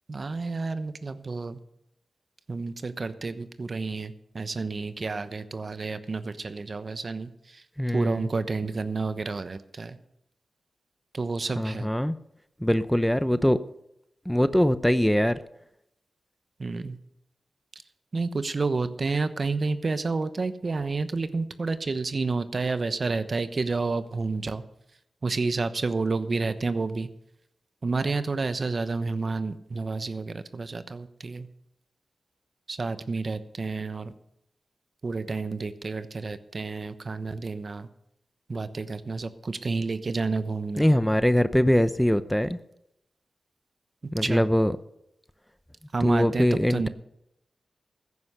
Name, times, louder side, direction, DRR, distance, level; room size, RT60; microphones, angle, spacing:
voice 1, 0.1-1.6 2.5-7.3 7.9-10.0 11.1-11.9 16.6-17.0 18.1-24.6 25.2-27.1 27.8-31.5 32.7-34.1 35.0-37.9 38.5-40.8 44.2-44.4 45.9-46.9, right 3 dB, 50° right, 12 dB, 1.0 m, -30 dB
voice 2, 7.8-8.3 11.5-12.2 12.6-13.6 14.3-15.4 40.8-42.6 44.1-44.8 46.0-46.9, equal, 5° left, 14 dB, 0.6 m, -22 dB
15.0 x 9.7 x 6.7 m, 0.81 s
cardioid pair, 55°, 0 cm